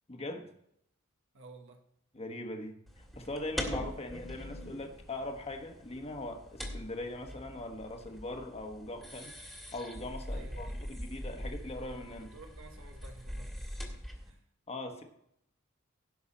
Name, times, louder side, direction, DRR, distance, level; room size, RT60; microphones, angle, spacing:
voice 1, 0.1-0.5 2.1-9.3 9.7-12.3 14.7-15.0, left 2 dB, 30° left, 4 dB, 1.3 m, -41 dB
voice 2, 1.3-1.8 10.3-10.7 12.1-13.9 14.3-14.4, right 3 dB, 65° right, 4 dB, 1.2 m, -53 dB
sound 1, 2.9-14.3, equal, ahead, 1.8 m, -42 dB
17.0 x 5.9 x 4.2 m, 0.74 s
head